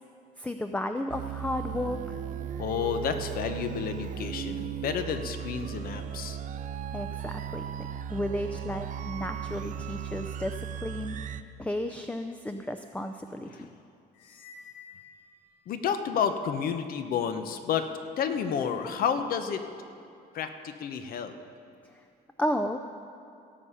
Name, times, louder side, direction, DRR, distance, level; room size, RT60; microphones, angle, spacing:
voice 1, 0.4-2.2 6.9-7.6 8.1-11.2 11.6-13.7 21.8-22.0 22.4-22.8, left 1 dB, 10° left, 7 dB, 0.5 m, -33 dB
sound 1, 1.1-11.4, right 9 dB, 50° right, 0.5 m, -36 dB
voice 2, 2.6-6.4 13.5-13.7 15.7-17.9 18.2-19.6 20.3-21.3, left 7 dB, 60° left, 8 dB, 0.9 m, -30 dB
sound 2, 14.1-16.0, left 5 dB, 90° left, 1.2 m, -51 dB
17.5 x 6.9 x 5.7 m, 2.6 s
cardioid pair, 110°, 17 cm